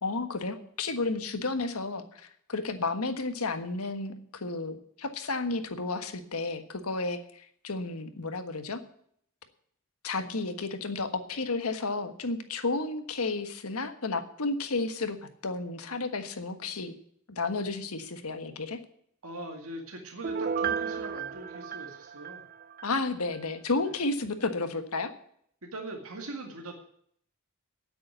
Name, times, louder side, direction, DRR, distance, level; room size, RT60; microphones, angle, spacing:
voice 1, 0.0-8.8 10.0-15.2 15.4-16.9 17.3-18.8 22.8-25.1, left 3 dB, 85° left, 9 dB, 1.4 m, -32 dB
voice 2, 19.2-22.4 23.8-24.0 25.6-26.8, right 2 dB, 75° right, 3 dB, 2.1 m, -41 dB
Piano, 20.2-22.9 23.3-23.4, right 6 dB, 45° right, 0.6 m, -33 dB
9.6 x 8.8 x 9.2 m, 0.65 s
head